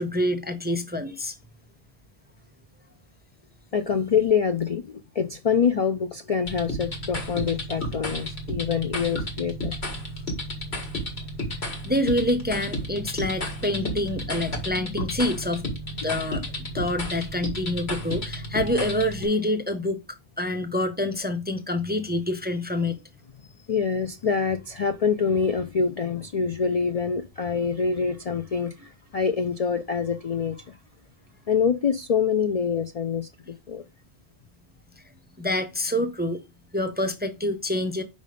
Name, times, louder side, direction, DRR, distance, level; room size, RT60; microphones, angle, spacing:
voice 1, 0.0-1.4 11.8-15.7 16.0-16.4 16.7-20.0 20.4-23.0 35.4-36.4 36.7-38.0, left 1 dB, 10° right, 0.5 m, -26 dB
voice 2, 3.7-9.8 23.7-30.8 31.5-33.3 33.7-33.8, left 6 dB, 50° left, 0.4 m, -25 dB
sound 1, 6.4-19.2, equal, 75° left, 2.0 m, -32 dB
5.3 x 5.2 x 5.0 m
omnidirectional pair, 1.1 m